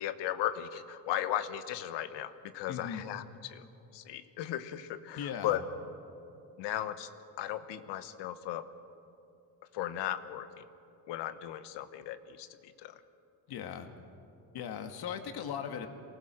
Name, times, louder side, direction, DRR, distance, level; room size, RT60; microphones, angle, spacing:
voice 1, 0.0-5.6 6.6-7.1 7.4-8.7 9.7-10.7 11.1-13.0, left 12 dB, 85° left, 11 dB, 1.1 m, -36 dB
voice 2, 2.7-3.0 5.1-5.6 13.5-13.9 14.5-15.9, left 8 dB, 65° left, 6 dB, 1.9 m, -38 dB
24.0 x 19.0 x 6.4 m, 2.8 s
cardioid pair, 120°, 41 cm